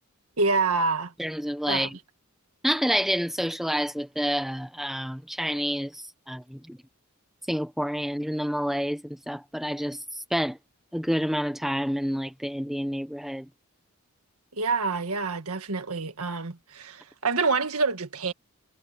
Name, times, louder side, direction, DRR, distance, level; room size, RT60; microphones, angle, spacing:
voice 1, 0.4-1.1 1.7-1.9 14.5-18.3, right 4 dB, 75° right, 1.8 m, -27 dB
voice 2, 1.2-2.0 2.6-6.8 7.5-10.6 10.9-13.5, equal, ahead, 1.1 m, -28 dB
head